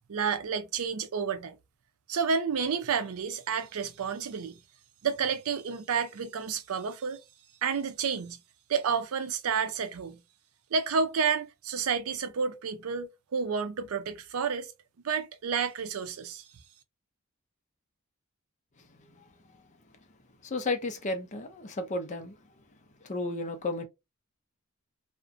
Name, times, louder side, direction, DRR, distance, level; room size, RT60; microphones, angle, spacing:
voice 1, 0.1-1.6 2.1-4.5 5.0-7.2 7.6-8.4 8.7-10.2 10.7-14.7 15.0-16.4, right 6 dB, 80° right, 0.5 m, -30 dB
voice 2, 20.4-22.3 23.0-23.8, left 2 dB, 35° left, 0.4 m, -33 dB
2.5 x 2.1 x 2.5 m
head